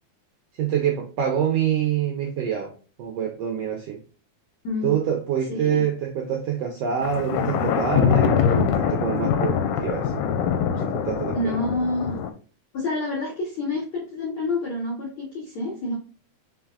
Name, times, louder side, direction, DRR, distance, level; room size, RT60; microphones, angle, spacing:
voice 1, 0.6-4.0 4.8-10.3 10.7-11.6, right 8 dB, 85° right, 1.4 m, -26 dB
voice 2, 4.6-5.0 5.5-5.8 11.3-12.2 12.7-16.0, left 2 dB, 70° left, 1.2 m, -28 dB
Thunder, 7.0-12.3, left 8 dB, 90° left, 2.1 m, -23 dB
4.5 x 3.9 x 2.3 m
omnidirectional pair, 3.5 m